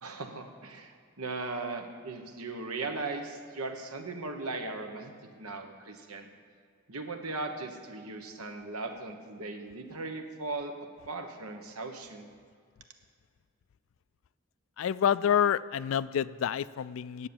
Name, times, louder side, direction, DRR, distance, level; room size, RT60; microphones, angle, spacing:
voice 1, 0.0-5.1 5.4-6.3 6.9-10.7 11.1-12.3, right 3 dB, 85° right, 5 dB, 1.2 m, -38 dB
voice 2, 14.8-17.3, left 8 dB, 65° left, 18 dB, 0.3 m, -28 dB
10.0 x 8.4 x 7.1 m, 2.1 s
head